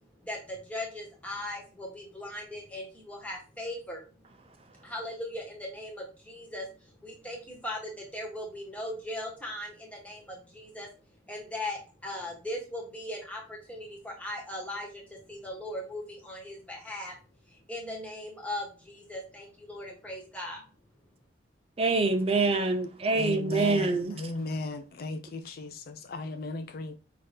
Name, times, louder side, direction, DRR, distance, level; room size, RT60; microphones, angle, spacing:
voice 1, 0.3-4.0 4.8-6.7 7.0-10.9 11.3-17.1 17.7-20.6, left 1 dB, 5° left, 1.3 m, -38 dB
voice 2, 21.8-24.1, right 3 dB, 30° right, 0.4 m, -25 dB
voice 3, 23.1-26.9, left 2 dB, 50° left, 0.4 m, -36 dB
5.5 x 2.8 x 3.3 m
head